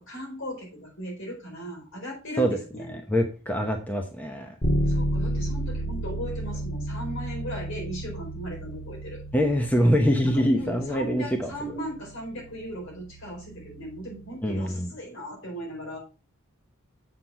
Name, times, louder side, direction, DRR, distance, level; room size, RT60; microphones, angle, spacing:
voice 1, 0.0-2.9 4.8-9.2 10.2-16.0, equal, 65° left, -1 dB, 4.6 m, -37 dB
voice 2, 2.9-4.5 9.3-11.5 14.4-14.9, equal, 10° left, 3 dB, 0.9 m, -24 dB
Bass guitar, 4.6-14.4, right 1 dB, 40° left, 2.4 m, -32 dB
7.7 x 6.0 x 4.5 m, 0.34 s
head